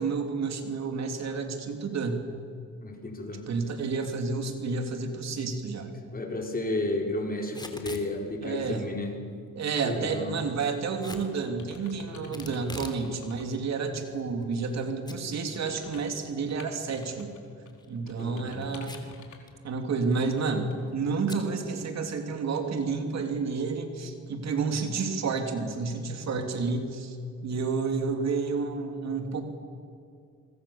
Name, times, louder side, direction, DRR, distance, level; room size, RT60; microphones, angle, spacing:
voice 1, 0.0-2.2 3.3-5.9 8.4-8.8 9.5-17.3 17.9-19.0 19.6-27.2 27.4-29.4, right 4 dB, 60° right, 5 dB, 3.2 m, -30 dB
voice 2, 2.8-3.4 3.8-3.9 6.1-9.1 9.8-10.3 12.2-12.6 18.1-18.7, left 2 dB, 30° left, 1 dB, 4.7 m, -33 dB
Packing tape duct tape / Tearing, 7.4-8.1 11.0-11.3 12.3-13.0 13.4-13.5 14.2-14.8 15.1-15.2 15.6-15.7 17.6-17.9 18.8-19.2 19.5-19.6 19.8-20.2 21.3-21.5, left 2 dB, 15° left, 3.4 m, -42 dB
sound 1, 10.6-10.8 11.3-12.6 12.9-13.5 14.0-14.1 15.5-17.4 17.7-19.5 20.1-20.4 20.7-20.8, left 5 dB, 70° left, 4.2 m, -50 dB
26.5 x 23.5 x 7.3 m, 2.4 s
cardioid pair, 90°, 30 cm